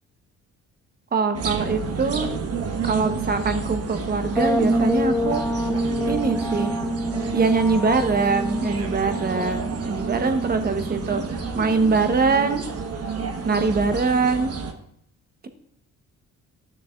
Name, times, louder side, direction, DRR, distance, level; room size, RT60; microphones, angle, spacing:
voice 1, 1.1-2.3 2.8-5.4 6.1-6.7 7.3-11.2 11.5-12.6 13.4-14.5, right 4 dB, 30° right, 8 dB, 0.9 m, -23 dB
sound 1, 1.3-14.7, right 5 dB, 55° right, 1.1 m, -30 dB
sound 2, 4.4-12.0, equal, 5° left, 0.7 m, -28 dB
12.5 x 6.7 x 2.4 m, 0.71 s
cardioid pair, 90°, 30 cm